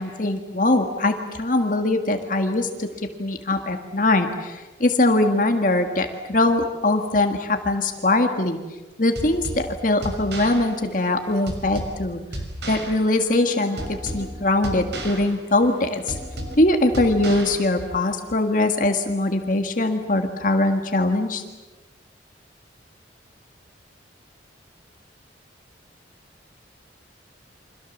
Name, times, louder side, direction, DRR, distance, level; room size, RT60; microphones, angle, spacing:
voice 1, 0.0-2.9 3.2-8.6 9.0-12.2 12.7-16.2 16.6-21.4, left 2 dB, 45° left, 5 dB, 1.8 m, -22 dB
sound 1, 9.2-18.1, right 1 dB, 70° right, 5.7 m, -35 dB
29.0 x 25.5 x 7.3 m, 1.2 s
head